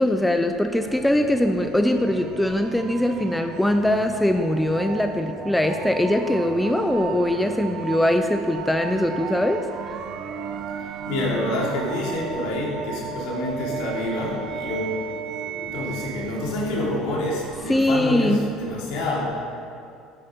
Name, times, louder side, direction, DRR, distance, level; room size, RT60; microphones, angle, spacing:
voice 1, 0.0-9.6 17.7-18.5, left 1 dB, 5° left, 6 dB, 0.5 m, -22 dB
sound 1, 0.8-18.3, right 7 dB, 50° right, 0.7 m, -35 dB
voice 2, 10.8-15.0 15.6-19.3, left 1 dB, 75° left, -3 dB, 2.8 m, -27 dB
10.0 x 8.6 x 5.1 m, 2.4 s
cardioid pair, 130°, 0 cm